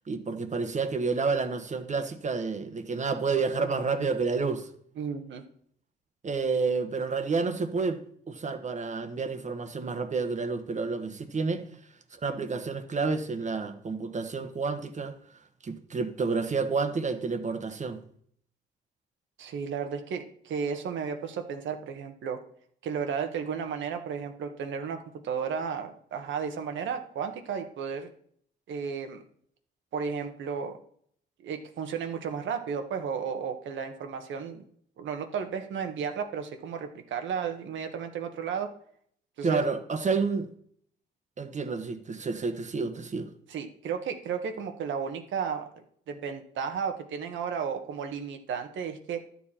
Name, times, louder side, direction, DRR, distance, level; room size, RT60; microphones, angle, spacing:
voice 1, 0.1-4.7 6.2-8.0 8.3-11.6 12.1-15.1 15.6-18.0 39.4-40.5 41.4-43.3, right 4 dB, 35° right, 1.4 m, -29 dB
voice 2, 5.0-5.4 19.4-22.4 22.8-25.0 25.2-28.1 28.7-29.2 29.9-30.8 31.4-34.6 35.0-38.7 39.4-39.6 43.5-49.2, right 6 dB, 75° right, 1.5 m, -33 dB
12.0 x 7.2 x 4.4 m
cardioid pair, 90°, 20 cm